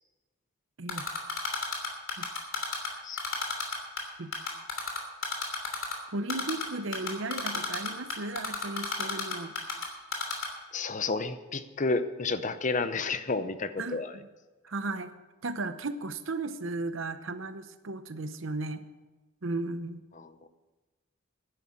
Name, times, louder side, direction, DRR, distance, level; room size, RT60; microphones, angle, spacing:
Typing, 0.9-2.9 3.2-4.0 4.3-5.9 6.3-6.6 6.9-9.8 10.1-10.5, left 5 dB, 70° left, 3.0 m, -31 dB
voice 1, 6.1-9.5 13.8-14.2 14.6-15.1 15.4-18.8 19.4-20.0, right 2 dB, 65° right, 11 dB, 0.8 m, -35 dB
voice 2, 10.7-14.1 20.1-20.3, left 3 dB, 35° left, 11 dB, 0.7 m, -31 dB
11.5 x 10.0 x 7.3 m, 1.2 s
head